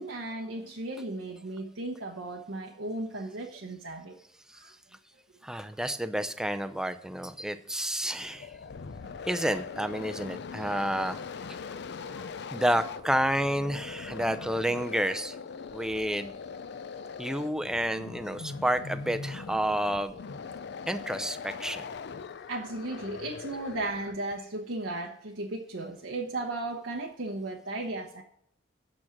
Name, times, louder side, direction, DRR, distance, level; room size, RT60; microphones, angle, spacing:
voice 1, 0.0-4.2 4.5-4.7 8.2-8.3 9.0-9.1 14.3-14.4 22.5-28.2, right 2 dB, 90° right, -1 dB, 1.0 m, -36 dB
voice 2, 5.4-8.5 9.3-11.2 12.5-15.4 15.7-16.3 17.2-20.2 20.9-21.9, right 1 dB, 5° right, 9 dB, 0.5 m, -30 dB
sound 1, 8.2-24.3, left 5 dB, 65° left, 0.5 m, -41 dB
8.7 x 6.2 x 5.9 m, 0.70 s
head